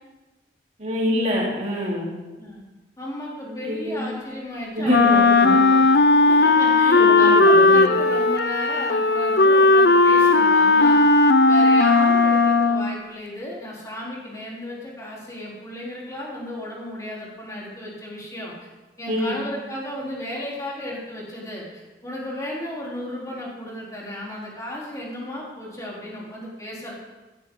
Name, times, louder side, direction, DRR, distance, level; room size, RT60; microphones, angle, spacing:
voice 1, 0.8-2.1 3.5-4.1 4.7-5.6 6.9-7.9 19.1-19.4, equal, 40° right, -3 dB, 3.4 m, -25 dB
voice 2, 3.0-5.8 6.3-11.0 11.4-18.5 19.0-26.9, left 1 dB, 20° left, -5 dB, 3.7 m, -34 dB
Wind instrument woodwind instrument, 4.9-13.0, left 3 dB, 65° left, 0.6 m, -16 dB
15.5 x 13.0 x 3.9 m, 1.2 s
head